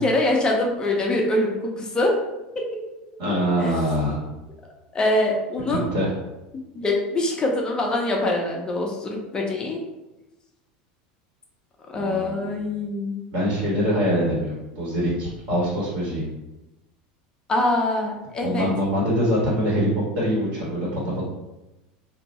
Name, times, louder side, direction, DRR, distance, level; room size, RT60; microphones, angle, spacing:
voice 1, 0.0-2.2 2.5-2.6 3.6-3.8 4.9-5.9 6.5-9.8 11.9-13.2 17.5-18.7, left 2 dB, 20° left, 0 dB, 0.6 m, -24 dB
voice 2, 3.2-4.2 5.7-6.1 12.0-12.5 13.3-16.3 18.4-19.9 20.1-21.2, equal, 65° right, -7 dB, 1.5 m, -24 dB
2.7 x 2.2 x 4.1 m, 1.0 s
supercardioid pair, 135°, 4 cm